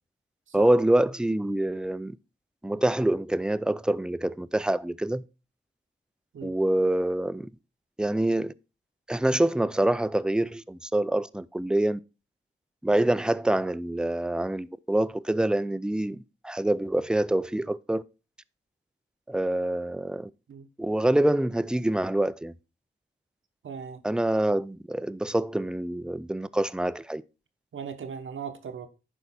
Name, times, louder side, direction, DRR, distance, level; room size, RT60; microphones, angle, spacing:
voice 1, 0.5-2.2 2.6-5.2 6.4-7.5 8.0-8.5 9.1-12.0 12.8-18.0 19.3-20.3 20.8-22.5 24.0-27.2, right 1 dB, 5° right, 0.4 m, -26 dB
voice 2, 23.6-24.0 27.7-28.9, right 7 dB, 80° right, 1.2 m, -38 dB
11.0 x 4.6 x 4.2 m
cardioid pair, 60°, 20 cm